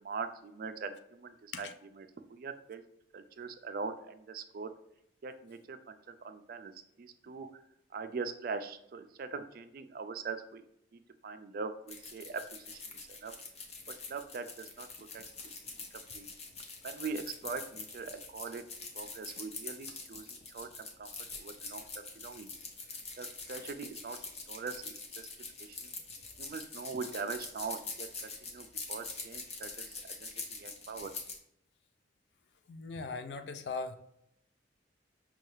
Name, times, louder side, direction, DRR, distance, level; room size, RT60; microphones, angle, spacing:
voice 1, 0.0-1.7 2.0-2.8 3.1-4.7 5.2-6.7 7.0-7.6 7.9-10.6 10.9-12.8 13.2-13.3 14.1-15.2 15.9-16.3 16.8-18.6 18.9-20.7 21.0-21.1 21.4-21.9 22.2-22.5 23.2-24.2 24.5-25.3 25.6-25.9 26.4-31.1, right 4 dB, 55° right, 9 dB, 0.4 m, -42 dB
sound 1, 11.9-31.4, left 4 dB, 35° left, 0.7 m, -44 dB
voice 2, 32.7-34.0, left 4 dB, 70° left, 8 dB, 0.4 m, -39 dB
5.5 x 2.3 x 3.1 m, 0.76 s
head